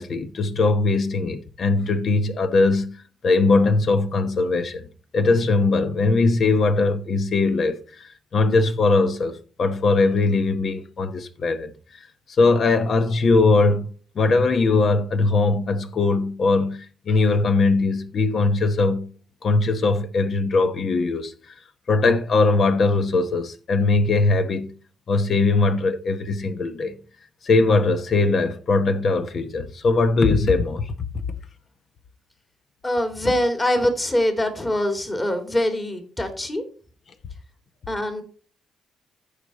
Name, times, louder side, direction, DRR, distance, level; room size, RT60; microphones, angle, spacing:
voice 1, 0.0-3.0 3.2-11.7 12.0-12.1 12.4-13.9 14.1-19.1 19.4-21.5 21.9-24.7 25.1-27.0 27.4-31.0, left 3 dB, 50° left, 1.0 m, -20 dB
voice 2, 32.8-36.6 37.9-38.2, left 1 dB, 20° left, 2.4 m, -23 dB
14.0 x 5.0 x 4.1 m
cardioid pair, 95°, 0 cm